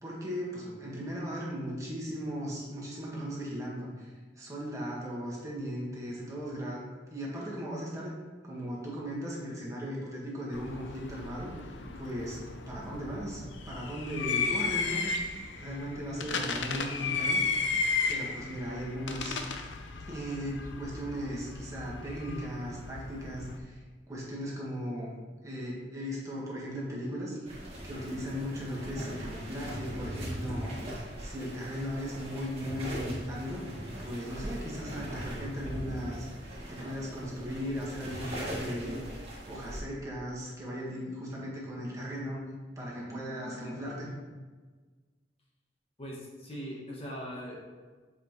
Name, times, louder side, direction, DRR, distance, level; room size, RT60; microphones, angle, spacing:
voice 1, 0.0-6.8 7.1-8.2 8.4-15.1 15.5-17.4 18.1-19.4 20.1-23.8 24.1-25.1 25.4-36.2 36.7-42.4 42.7-44.1, equal, 20° right, -5 dB, 1.6 m, -37 dB
sound 1, 10.5-23.6, left 4 dB, 80° left, 0.6 m, -34 dB
sound 2, 27.4-39.8, equal, 35° right, 1.8 m, -40 dB
voice 2, 46.0-47.6, equal, 35° left, -3 dB, 1.2 m, -40 dB
8.1 x 5.0 x 3.1 m, 1.4 s
head